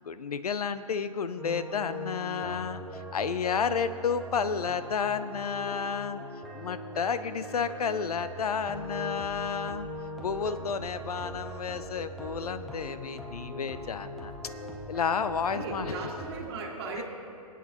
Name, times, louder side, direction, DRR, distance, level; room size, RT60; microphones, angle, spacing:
voice 1, 0.0-6.2 6.5-9.9 10.2-14.3 14.9-15.9 17.0-17.1, left 6 dB, 85° left, 12 dB, 0.6 m, -31 dB
sound 1, 1.4-16.5, equal, ahead, 0.7 m, -40 dB
voice 2, 15.5-17.0, right 3 dB, 45° right, 0 dB, 1.8 m, -37 dB
21.5 x 8.4 x 2.9 m, 2.4 s
hypercardioid pair, 140°, 19 cm